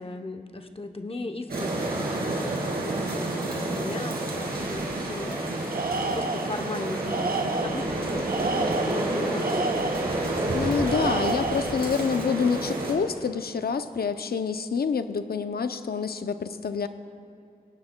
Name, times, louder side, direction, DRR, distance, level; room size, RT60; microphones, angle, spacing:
voice 1, 0.0-5.5 6.1-9.8, left 2 dB, 35° left, 5 dB, 0.7 m, -37 dB
sound 1, 1.5-12.9, right 2 dB, 85° right, 2.4 m, -29 dB
Tools, 5.7-6.6 7.1-7.9 8.3-10.2 10.9-11.8, right 3 dB, 70° right, 0.6 m, -30 dB
voice 2, 10.5-16.9, left 5 dB, 80° left, 10 dB, 0.5 m, -27 dB
23.5 x 9.5 x 2.2 m, 2.7 s
wide cardioid pair, 85°, 16 cm